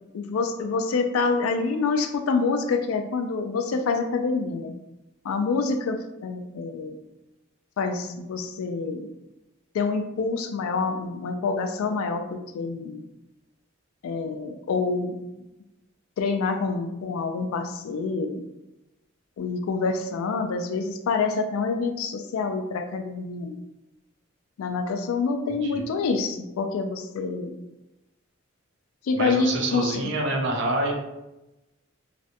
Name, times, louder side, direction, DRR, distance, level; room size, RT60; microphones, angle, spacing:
voice 1, 0.1-4.7 5.2-7.0 7.8-9.1 9.7-13.0 14.0-15.2 16.2-18.4 19.4-23.6 24.6-27.6 29.0-30.1, left 4 dB, 85° left, 6 dB, 0.3 m, -27 dB
voice 2, 25.5-25.9 29.2-30.9, right 2 dB, 60° right, 1 dB, 0.5 m, -27 dB
2.4 x 2.1 x 2.7 m, 0.95 s
head